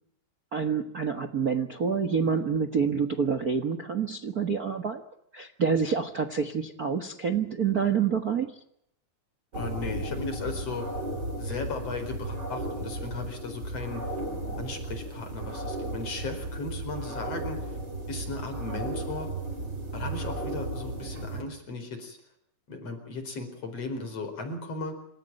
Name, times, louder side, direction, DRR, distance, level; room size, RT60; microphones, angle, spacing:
voice 1, 0.5-5.0 5.3-8.5, right 6 dB, 65° right, 10 dB, 0.9 m, -27 dB
voice 2, 9.5-10.9 11.4-14.0 14.6-17.6 18.1-19.3 19.9-22.2 22.7-24.9, left 3 dB, 45° left, 7 dB, 5.4 m, -36 dB
sound 1, 9.5-21.4, right 1 dB, 30° right, 4.7 m, -35 dB
27.5 x 15.0 x 9.1 m, 0.75 s
omnidirectional pair, 4.1 m